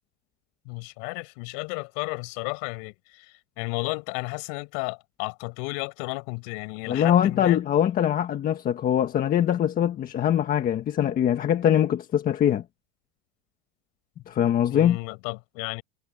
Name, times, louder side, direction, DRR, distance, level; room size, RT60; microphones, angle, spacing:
voice 1, 0.7-7.6 14.7-15.8, left 35 dB, 55° left, 7.3 m, -33 dB
voice 2, 6.9-12.6 14.3-15.0, left 10 dB, 25° left, 1.6 m, -22 dB
supercardioid pair, 160°, 34 cm